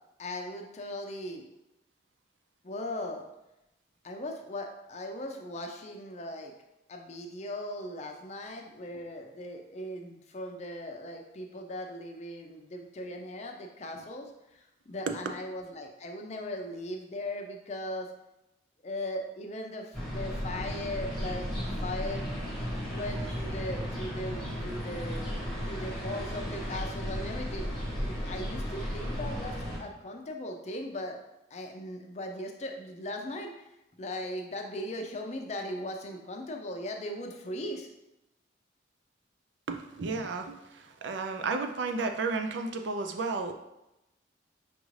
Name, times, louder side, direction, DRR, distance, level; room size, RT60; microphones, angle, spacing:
voice 1, 0.2-1.4 2.6-3.2 4.0-6.5 6.9-18.1 18.8-25.2 25.6-31.2 31.5-33.7 34.0-37.9, left 1 dB, 35° left, 3 dB, 0.5 m, -38 dB
sound 1, 19.9-29.8, equal, ahead, 1.0 m, -35 dB
voice 2, 39.7-43.5, right 4 dB, 75° right, 5 dB, 0.4 m, -32 dB
5.1 x 2.5 x 3.1 m, 0.91 s
head